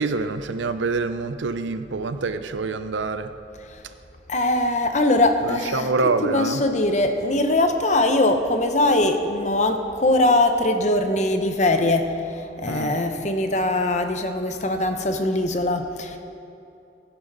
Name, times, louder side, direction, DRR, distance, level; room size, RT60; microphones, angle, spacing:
voice 1, 0.0-3.3 5.4-6.6 12.7-12.9, right 3 dB, 80° right, 11 dB, 0.6 m, -26 dB
voice 2, 4.3-5.9 6.2-16.2, left 2 dB, 40° left, 6 dB, 0.8 m, -21 dB
16.0 x 10.0 x 4.0 m, 2.8 s
head